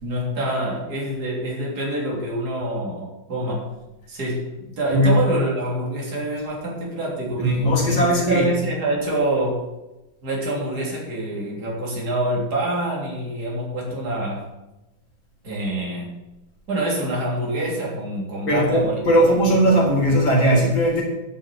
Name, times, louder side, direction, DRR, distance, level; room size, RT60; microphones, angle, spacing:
voice 1, 0.0-3.7 4.1-9.7 10.2-14.4 15.4-16.1 16.7-19.8, right 1 dB, 50° right, -4 dB, 3.7 m, -26 dB
voice 2, 7.3-8.5 18.5-21.0, equal, 70° left, -2 dB, 4.6 m, -18 dB
11.0 x 6.6 x 7.6 m, 0.99 s
omnidirectional pair, 2.2 m